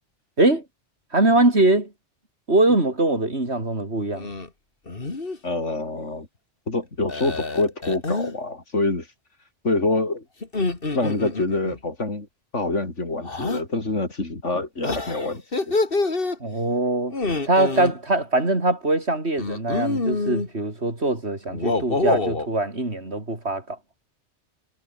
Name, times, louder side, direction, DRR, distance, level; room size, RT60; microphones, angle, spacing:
voice 1, 1.1-1.9 2.5-4.3 16.4-17.1 17.5-23.8, right 2 dB, 65° right, 5.0 m, -22 dB
sound 1, 4.1-4.5 4.9-5.4 7.1-8.3 10.4-11.8 13.2-13.6 14.8-16.4 17.1-17.9 19.4-20.5 21.5-22.5, left 3 dB, 50° left, 2.8 m, -26 dB
voice 2, 5.4-6.3 6.7-9.1 9.6-10.2 10.9-12.3 12.5-15.7, left 2 dB, 90° left, 4.4 m, -26 dB
omnidirectional pair, 1.2 m